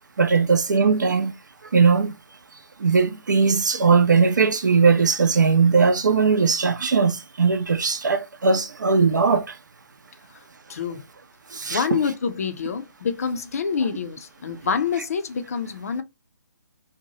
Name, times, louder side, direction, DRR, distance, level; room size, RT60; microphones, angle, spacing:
voice 1, 0.2-1.3 1.7-2.1 2.8-9.6 11.5-12.0, right 5 dB, 65° right, 0.6 m, -19 dB
voice 2, 10.7-11.0 11.7-16.0, left 6 dB, 50° left, 0.5 m, -26 dB
2.7 x 2.2 x 2.7 m
figure-of-eight pair, 140°, 11 cm